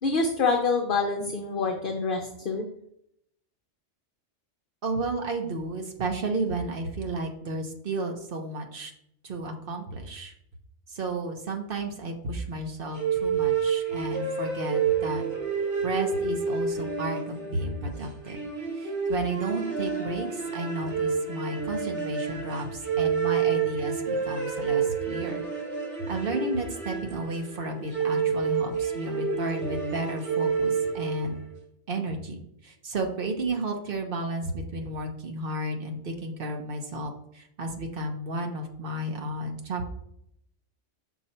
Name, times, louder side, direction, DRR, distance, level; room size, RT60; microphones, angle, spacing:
voice 1, 0.0-2.7, left 4 dB, 50° left, 3 dB, 0.8 m, -26 dB
voice 2, 4.8-8.9 9.2-10.3 10.9-15.2 15.8-18.4 18.8-25.4 26.0-31.3 31.9-39.9, right 2 dB, 50° right, 3 dB, 1.1 m, -32 dB
sound 1, 13.0-31.5, right 6 dB, 70° right, 2.6 m, -29 dB
6.8 x 4.6 x 4.3 m, 0.75 s
omnidirectional pair, 1.2 m